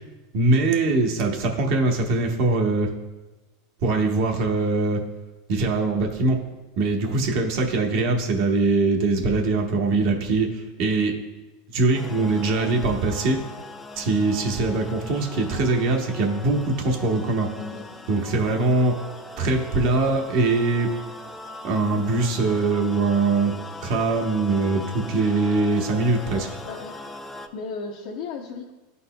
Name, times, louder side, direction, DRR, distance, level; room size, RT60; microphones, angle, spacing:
voice 1, 0.3-2.9 3.8-5.0 5.5-6.4 6.8-11.1 11.7-13.4 14.0-17.5 18.1-18.9 19.4-20.9 21.6-23.5 23.8-26.5, right 3 dB, 55° right, 2 dB, 1.0 m, -22 dB
sound 1, 11.9-27.5, left 2 dB, 10° left, 0.4 m, -40 dB
voice 2, 26.7-27.0 27.5-28.7, left 4 dB, 65° left, -2 dB, 0.7 m, -34 dB
11.5 x 4.1 x 2.2 m, 1.1 s
supercardioid pair, 140°, 0 cm